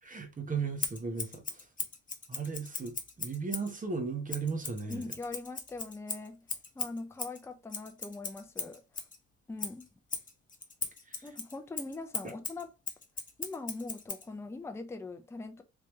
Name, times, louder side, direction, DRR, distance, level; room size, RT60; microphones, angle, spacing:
voice 1, 0.0-1.7 2.3-5.1 11.0-11.2 12.2-12.3, right 5 dB, 25° right, 1.0 m, -36 dB
Scissors, 0.8-3.7 4.3-9.2 9.6-14.3, left 4 dB, 25° left, 0.9 m, -39 dB
voice 2, 4.9-6.4 6.8-8.8 9.5-9.9 11.2-12.7 13.4-15.6, left 3 dB, 10° left, 0.5 m, -41 dB
3.5 x 3.0 x 3.1 m
cardioid pair, 90°, 30 cm